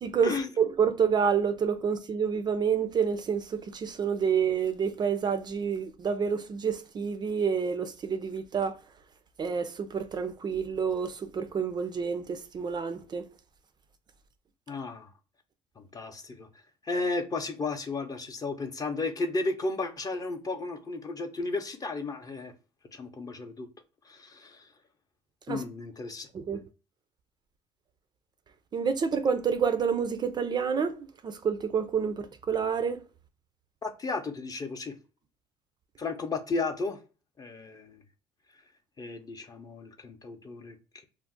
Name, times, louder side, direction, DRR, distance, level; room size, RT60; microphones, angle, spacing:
voice 1, 0.0-8.8 9.4-13.3 25.5-25.6 26.3-26.6 28.7-33.0, right 6 dB, 35° right, 0.4 m, -28 dB
voice 2, 14.7-15.1 15.8-16.5 16.8-22.5 22.9-23.7 24.0-24.7 25.5-26.3 33.8-34.9 36.0-37.0 37.4-38.0 39.0-41.0, left 3 dB, 30° left, 0.6 m, -34 dB
2.4 x 2.0 x 3.6 m
supercardioid pair, 85°, 13 cm